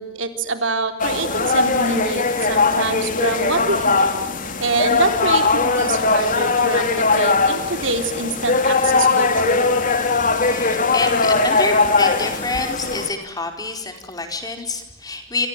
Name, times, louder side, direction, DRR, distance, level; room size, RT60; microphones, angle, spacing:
voice 1, 0.0-4.2 4.6-9.7, right 3 dB, 70° right, 7 dB, 3.8 m, -25 dB
sound 1, 1.0-13.1, left 3 dB, 45° left, 3.4 m, -19 dB
voice 2, 10.0-15.5, left 3 dB, 20° left, 5 dB, 4.8 m, -27 dB
28.0 x 28.0 x 7.5 m, 0.77 s
head